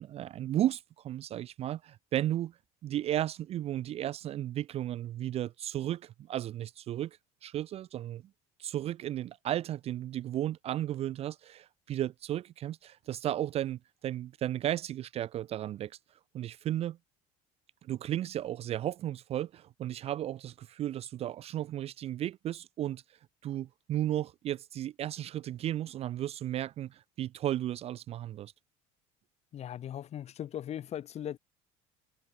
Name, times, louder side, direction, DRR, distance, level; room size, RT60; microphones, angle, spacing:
voice 1, 0.0-2.5 2.8-8.2 8.6-16.0 16.3-17.0 17.8-23.0 23.4-28.5, right 12 dB, 40° right, 0.4 m, -34 dB
voice 2, 29.5-31.4, left 10 dB, 45° left, 2.2 m, -39 dB
supercardioid pair, 115°, 16 cm